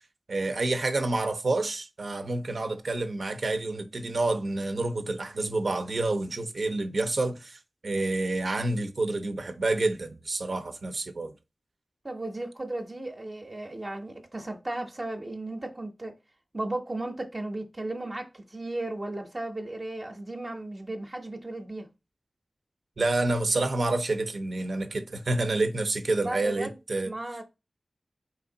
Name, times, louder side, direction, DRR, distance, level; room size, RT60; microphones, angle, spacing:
voice 1, 0.3-11.3 23.0-27.1, right 2 dB, 75° right, 0.6 m, -28 dB
voice 2, 12.0-16.1 16.5-21.9 26.2-26.8 27.0-27.4, right 2 dB, 35° right, 0.7 m, -35 dB
4.5 x 2.6 x 3.8 m
wide cardioid pair, 70°, 0 cm